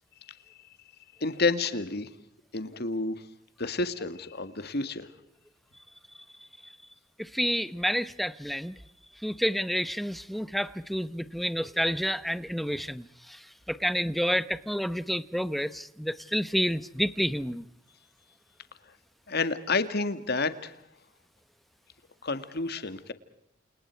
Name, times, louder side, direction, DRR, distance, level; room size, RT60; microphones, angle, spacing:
voice 1, 1.2-2.1 2.5-3.2 3.6-5.1 19.3-20.7 22.2-23.1, left 3 dB, 55° left, 2.0 m, -29 dB
voice 2, 7.2-8.7 9.2-17.6, equal, ahead, 0.9 m, -29 dB
30.0 x 28.5 x 4.7 m
head